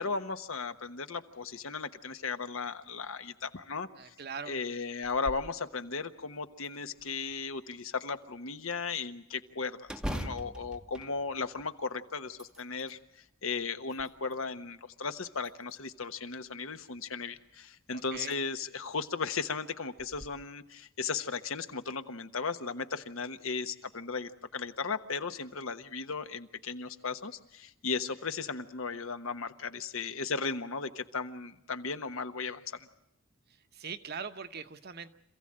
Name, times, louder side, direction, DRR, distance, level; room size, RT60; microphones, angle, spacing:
voice 1, 0.0-4.1 4.4-32.9, left 4 dB, 70° left, 9 dB, 1.1 m, -36 dB
voice 2, 3.9-4.6 17.9-18.4 33.7-35.1, right 6 dB, 45° right, 9 dB, 1.0 m, -41 dB
sound 1, 5.0-5.5 6.0-6.1 6.6-7.4 9.8-11.8 12.2-13.0 13.6-14.5 15.4-16.0 17.5-17.6 18.1-18.4 18.8-18.9 20.0-20.3, equal, 5° right, 0.8 m, -42 dB
27.0 x 15.5 x 8.7 m, 0.80 s
head